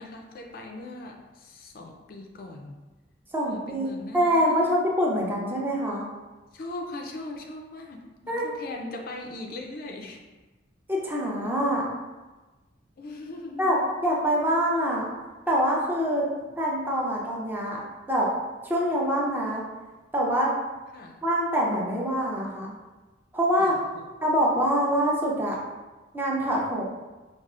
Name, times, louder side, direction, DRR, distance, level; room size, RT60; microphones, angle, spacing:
voice 1, 0.0-2.8 3.5-4.8 6.5-10.2 13.0-13.8 20.9-21.2 23.6-24.0, left 2 dB, 50° left, 2 dB, 0.4 m, -40 dB
voice 2, 3.3-3.9 4.1-6.1 8.3-8.4 10.9-11.9 13.6-15.1 15.5-16.3 16.6-17.8 18.1-18.3 18.6-19.6 20.1-20.5 21.2-22.7 23.3-23.7 24.2-25.6 26.1-26.8, equal, 10° right, -3 dB, 0.5 m, -25 dB
4.7 x 2.4 x 2.4 m, 1.2 s
head